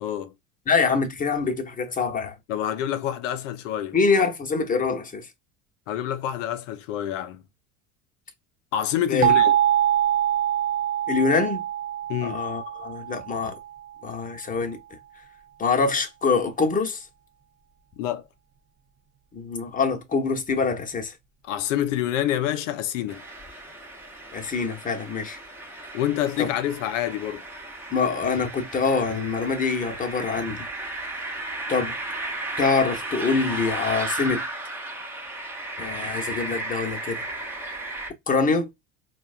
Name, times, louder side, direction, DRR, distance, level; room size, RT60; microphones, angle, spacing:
voice 1, 0.0-0.3 2.5-4.0 5.9-7.4 8.7-9.6 12.1-12.4 18.0-18.2 21.4-23.2 25.9-27.4, left 11 dB, 80° left, 0.5 m, -27 dB
voice 2, 0.7-2.3 3.9-5.3 9.1-9.3 11.1-11.7 12.2-13.6 14.0-14.8 15.6-17.0 19.3-21.1 24.3-25.4 26.4-26.5 27.9-30.6 31.7-32.0 32.6-34.4 35.8-37.2 38.3-38.7, left 4 dB, 20° left, 0.8 m, -25 dB
sound 1, 9.2-13.9, right 11 dB, 25° right, 0.4 m, -24 dB
sound 2, 23.1-38.1, right 2 dB, 5° right, 0.8 m, -34 dB
4.4 x 2.1 x 2.4 m
hypercardioid pair, 80°, 37 cm